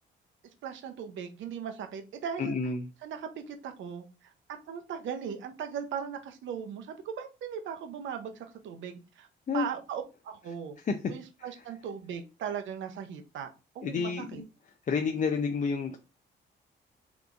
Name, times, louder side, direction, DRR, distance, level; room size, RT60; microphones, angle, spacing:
voice 1, 0.6-2.5 3.0-4.3 4.7-9.3 9.5-10.8 11.1-14.4, right 7 dB, 75° right, 0.7 m, -38 dB
voice 2, 2.4-2.9 9.5-9.7 10.9-11.0 11.4-11.5 13.8-14.4 14.9-16.0, left 5 dB, 40° left, 0.5 m, -30 dB
3.5 x 2.9 x 2.5 m
cardioid pair, 90°, 20 cm